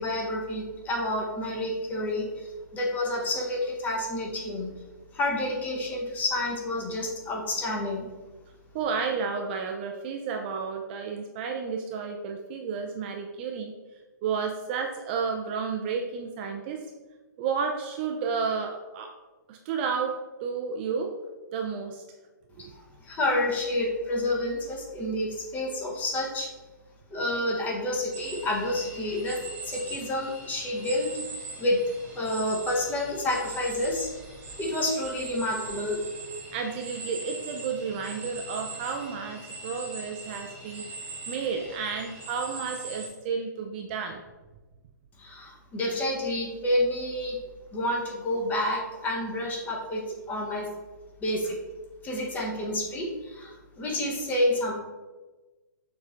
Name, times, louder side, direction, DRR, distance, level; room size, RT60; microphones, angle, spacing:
voice 1, 0.0-4.7 5.1-8.1 22.6-26.5 27.1-31.1 31.6-31.8 32.1-34.1 34.6-36.0 45.2-47.4 47.7-50.7 51.2-51.6 52.0-54.7, left 1 dB, 15° left, -1 dB, 0.8 m, -29 dB
voice 2, 8.7-13.7 14.2-16.9 17.4-19.1 19.5-21.1 21.5-22.0 22.6-22.7 36.5-40.8 41.3-44.2, right 5 dB, 30° right, 3 dB, 0.4 m, -31 dB
sound 1, 28.1-43.1, right 3 dB, 15° right, 1.0 m, -41 dB
6.5 x 3.1 x 2.4 m, 1.2 s
figure-of-eight pair, 130°, 10 cm